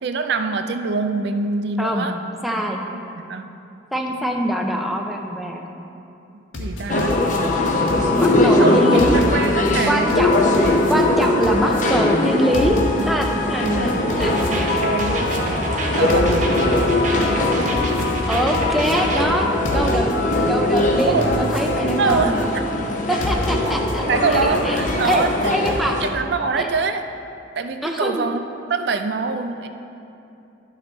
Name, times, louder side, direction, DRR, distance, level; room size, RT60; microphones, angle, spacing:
voice 1, 0.0-2.2 2.9-3.6 6.3-7.3 8.6-11.0 13.6-14.1 14.5-15.3 15.9-16.6 21.1-21.4 22.0-22.6 24.1-25.6 26.0-27.1 27.6-29.7, right 4 dB, 55° right, 7 dB, 0.4 m, -25 dB
voice 2, 2.4-2.8 3.9-5.7 8.2-9.2 9.9-10.3 10.9-14.3 18.3-20.1 20.5-22.5 23.1-24.0 24.7-24.8 25.0-25.3 25.5-26.0 26.6-26.7 27.8-28.3, equal, ahead, 1 dB, 0.5 m, -23 dB
sound 1, 6.5-8.3 9.0-9.7 10.1-11.8 12.5-13.3 13.6-15.4 16.1-16.8 17.2-18.9 19.6-20.4 20.8-22.4 23.2-23.9 24.3-25.8, left 2 dB, 75° left, 1.1 m, -30 dB
sound 2, 6.9-26.1, left 2 dB, 40° left, 0.6 m, -20 dB
sound 3, 14.2-19.2, right 1 dB, 40° right, 0.8 m, -28 dB
11.0 x 5.4 x 3.9 m, 2.7 s
head